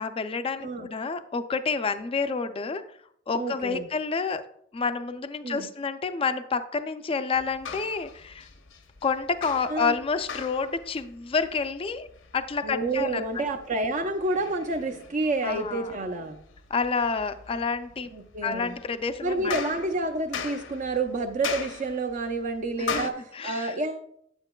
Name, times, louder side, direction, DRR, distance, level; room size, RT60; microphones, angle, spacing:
voice 1, 0.0-2.8 3.3-4.4 4.7-8.5 9.0-12.1 12.3-13.4 15.4-16.0 16.7-18.1 18.4-19.5 22.9-23.8, left 5 dB, 30° left, 10 dB, 0.4 m, -29 dB
voice 2, 3.4-3.9 5.4-5.7 9.7-9.9 12.6-16.4 18.1-18.8 19.2-24.1, right 2 dB, 40° right, 4 dB, 0.5 m, -29 dB
sound 1, 7.3-23.1, left 6 dB, 75° left, 0.8 m, -40 dB
8.8 x 7.8 x 2.2 m, 0.68 s
head